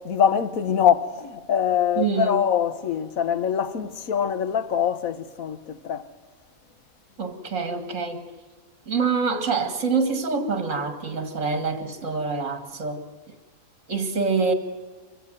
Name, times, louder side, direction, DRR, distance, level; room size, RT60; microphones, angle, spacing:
voice 1, 0.0-6.1, left 8 dB, 75° left, 1.5 m, -24 dB
voice 2, 2.0-2.4 7.2-8.3 8.9-13.0 13.9-14.5, right 4 dB, 60° right, 2.5 m, -26 dB
24.0 x 15.5 x 9.2 m
omnidirectional pair, 1.5 m